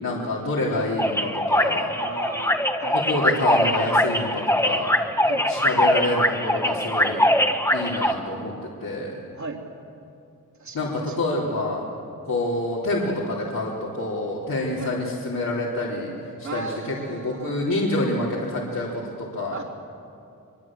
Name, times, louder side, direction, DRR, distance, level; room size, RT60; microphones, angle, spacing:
voice 1, 0.0-1.9 2.9-5.0 5.5-7.3 7.7-9.2 10.7-11.9 12.2-16.1 16.4-19.6, left 2 dB, 70° left, -5 dB, 3.8 m, -27 dB
sound 1, 1.0-8.1, left 1 dB, 10° left, 1.6 m, -22 dB
voice 2, 2.0-3.0 5.2-5.5 9.3-9.6 10.6-11.1 14.8-15.0 16.4-17.5 19.5-19.6, right 3 dB, 55° right, -2 dB, 3.3 m, -35 dB
24.0 x 23.5 x 7.6 m, 2.6 s
cardioid pair, 80°, 35 cm